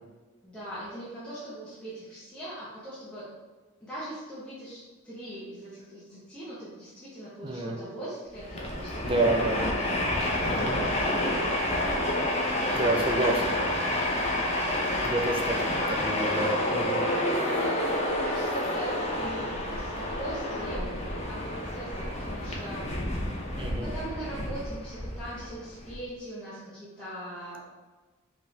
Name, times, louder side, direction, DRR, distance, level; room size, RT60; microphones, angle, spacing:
voice 1, 0.4-3.3 3.8-11.4 15.9-16.5 17.8-20.9 21.3-22.9 23.8-27.6, right 1 dB, 5° left, -11 dB, 0.9 m, -41 dB
voice 2, 7.4-7.8 9.0-9.7 10.4-10.8 12.7-13.7 15.0-17.0 23.6-23.9, right 2 dB, 25° right, 1 dB, 0.5 m, -29 dB
Train, 8.3-25.9, left 1 dB, 30° left, 0.7 m, -29 dB
5.3 x 3.1 x 3.2 m, 1.3 s
head